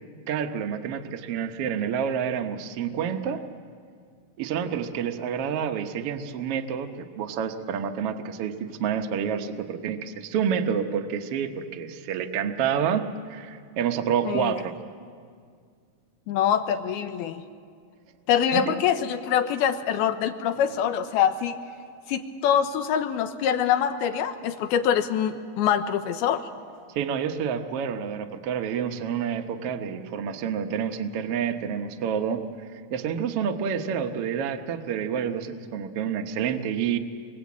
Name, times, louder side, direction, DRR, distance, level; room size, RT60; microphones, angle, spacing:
voice 1, 0.3-3.4 4.4-14.7 18.5-18.7 26.9-37.0, right 7 dB, 85° right, 5 dB, 1.3 m, -28 dB
voice 2, 16.3-17.4 18.3-21.5 22.1-26.5, left 9 dB, 85° left, 8 dB, 2.9 m, -24 dB
28.0 x 24.0 x 8.4 m, 2.1 s
omnidirectional pair, 4.4 m